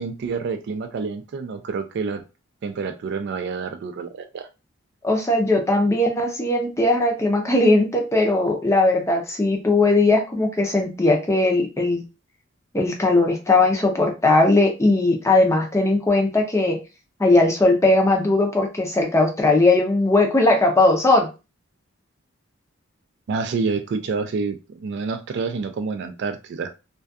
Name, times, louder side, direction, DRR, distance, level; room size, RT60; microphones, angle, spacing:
voice 1, 0.0-2.2 2.6-4.5 23.3-26.7, right 4 dB, 55° right, 8 dB, 0.3 m, -28 dB
voice 2, 5.0-12.0 12.7-16.8 17.2-21.3, left 2 dB, 15° left, 2 dB, 0.5 m, -19 dB
2.6 x 2.3 x 2.3 m, 0.29 s
head